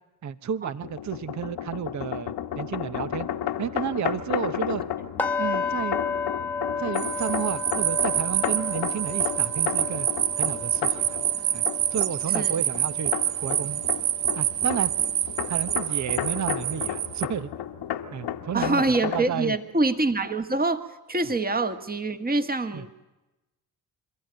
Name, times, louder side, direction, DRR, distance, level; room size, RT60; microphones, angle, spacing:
voice 1, 0.2-3.3 3.6-4.8 5.4-6.0 6.8-10.1 10.4-11.2 11.5-11.6 11.9-13.1 13.4-13.8 14.4-14.9 15.5-17.5 18.1-19.6 22.7-22.8, right 8 dB, 40° right, 15 dB, 0.9 m, -32 dB
sound 1, 0.8-19.3, left 10 dB, 70° left, 1.3 m, -33 dB
sound 2, 5.2-15.1 15.4-15.7 16.2-16.3, left 5 dB, 5° left, 1.6 m, -34 dB
sound 3, 6.9-17.2, right 12 dB, 90° right, 0.7 m, -27 dB
voice 2, 18.5-20.8 21.1-22.9, right 2 dB, 20° right, 9 dB, 1.6 m, -25 dB
27.0 x 13.0 x 9.1 m, 1.1 s
hypercardioid pair, 45°, 42 cm